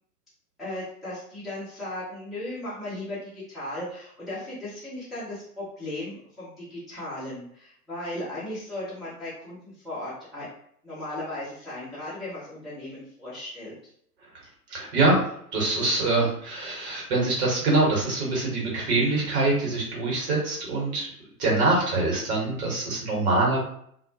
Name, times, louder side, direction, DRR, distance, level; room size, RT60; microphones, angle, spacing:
voice 1, 0.6-10.5 10.8-13.7, left 1 dB, ahead, -11 dB, 0.7 m, -36 dB
voice 2, 14.7-15.2 15.5-21.1 21.4-23.6, right 2 dB, 45° right, -3 dB, 1.2 m, -24 dB
2.2 x 2.1 x 2.7 m, 0.67 s
figure-of-eight pair, 100°, 47 cm